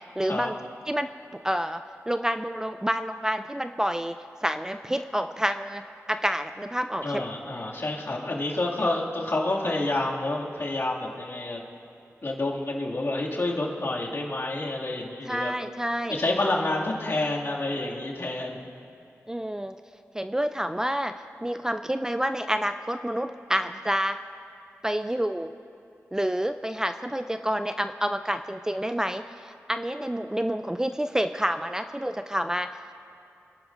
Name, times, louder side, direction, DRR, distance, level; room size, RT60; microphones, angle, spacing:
voice 1, 0.2-0.6 0.9-1.1 1.4-4.2 4.4-7.2 15.3-16.2 19.3-19.7 20.1-21.1 21.4-24.2 24.8-25.5 26.1-32.7, equal, 10° right, 9 dB, 0.4 m, -28 dB
voice 2, 7.0-11.6 12.2-15.5 16.1-18.7, left 2 dB, 55° left, -4 dB, 2.2 m, -28 dB
24.0 x 11.5 x 2.6 m, 2.5 s
cardioid pair, 55°, 5 cm